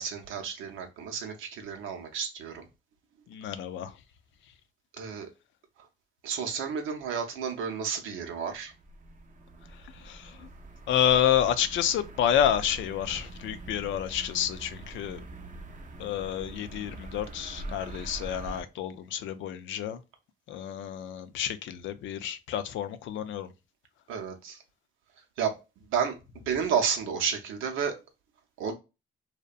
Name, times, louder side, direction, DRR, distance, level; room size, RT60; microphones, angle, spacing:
voice 1, 0.0-2.7 5.0-5.3 6.2-8.7 24.1-24.6 25.4-25.5 25.9-26.1 26.5-28.0 28.6-28.7, right 7 dB, 85° right, 0.6 m, -31 dB
voice 2, 3.3-4.0 4.4-4.5 9.6-10.5 10.9-15.2 16.0-20.0 20.5-23.5, left 10 dB, 75° left, 0.4 m, -29 dB
sound 1, 8.3-18.6, right 2 dB, 40° right, 0.5 m, -43 dB
2.7 x 2.1 x 2.4 m
cardioid pair, 90°, 20 cm